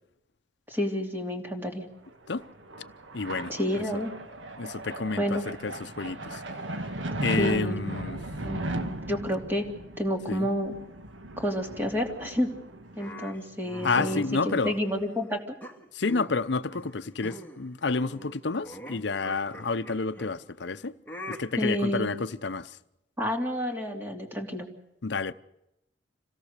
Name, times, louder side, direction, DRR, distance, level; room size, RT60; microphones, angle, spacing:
voice 1, 0.7-1.9 3.5-4.1 5.2-5.4 7.4-7.8 8.4-9.7 10.0-10.7 11.4-12.5 13.0-15.4 21.6-22.1 23.2-24.7, equal, 10° right, 2.8 m, -29 dB
sound 1, 2.1-13.4, right 1 dB, 85° right, 1.5 m, -37 dB
voice 2, 3.1-3.5 4.6-6.4 7.2-8.2 10.3-10.5 13.8-14.7 15.9-20.9 21.3-22.8 25.0-25.3, left 4 dB, 65° left, 0.7 m, -30 dB
sound 2, 13.0-15.1 15.6-16.4 16.7-16.9 17.2-17.6 17.9-20.3 21.1-21.4, equal, 10° left, 1.9 m, -42 dB
26.5 x 17.0 x 6.7 m
head